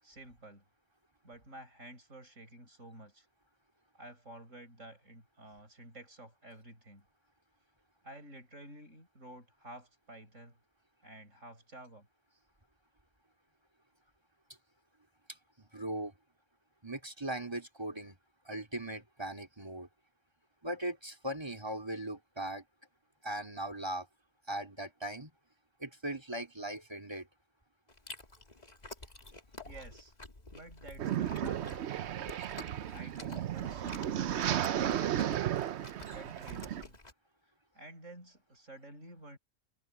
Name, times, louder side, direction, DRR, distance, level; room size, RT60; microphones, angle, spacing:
voice 1, 0.0-0.6 1.2-3.3 3.9-7.1 8.0-10.6 11.0-12.1 29.6-30.1 30.5-31.9 32.9-34.0 34.7-35.5 36.1-37.0 37.4-39.4, right 1 dB, 85° right, 7.2 m, -51 dB
voice 2, 15.6-16.1 16.8-18.2 18.4-19.9 20.6-22.6 23.2-24.1 24.5-25.3 25.8-27.3, right 1 dB, 20° right, 3.0 m, -39 dB
Chewing mastication, 27.9-37.1, left 2 dB, 35° left, 2.3 m, -50 dB
sound 1, 31.0-36.8, right 10 dB, 65° right, 0.9 m, -34 dB
omnidirectional pair, 1.3 m